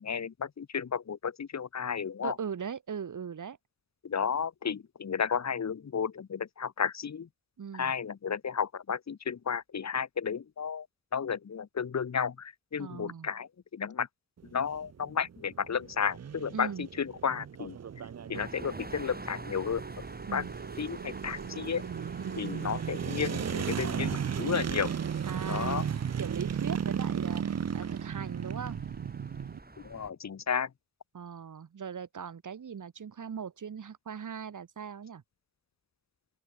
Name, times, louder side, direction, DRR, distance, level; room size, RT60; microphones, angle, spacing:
voice 1, 0.0-2.4 4.0-7.3 7.7-10.9 11.1-14.1 14.5-17.8 18.3-19.8 20.3-20.4 20.8-21.9 22.4-24.9 25.5-25.8 29.8-30.7, left 7 dB, 60° left, 0.8 m, -33 dB
voice 2, 2.2-3.6 7.6-7.9 12.8-13.3 16.5-16.9 20.3-20.5 22.2-22.5 25.2-28.8 31.1-35.2, right 7 dB, 85° right, 0.9 m, -39 dB
sound 1, 14.4-29.6, right 8 dB, 60° right, 0.5 m, -35 dB
sound 2, 18.3-30.1, right 2 dB, 30° right, 3.4 m, -46 dB
open air
wide cardioid pair, 85°, 30 cm